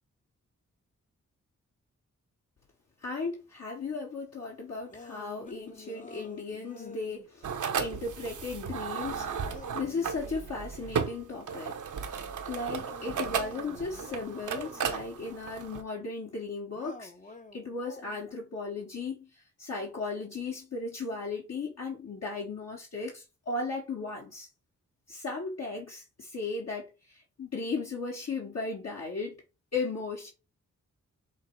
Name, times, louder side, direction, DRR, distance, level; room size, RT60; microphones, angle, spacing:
voice 1, 3.0-11.8 12.4-24.5 25.1-29.4 29.7-30.3, left 3 dB, 50° left, 1.4 m, -36 dB
sound 1, 4.9-7.3 8.9-10.5 12.7-15.0 16.8-18.3, left 3 dB, 25° left, 0.8 m, -49 dB
sound 2, 7.4-15.8, right 7 dB, 70° right, 0.9 m, -35 dB
5.7 x 2.0 x 4.6 m
cardioid pair, 50°, 32 cm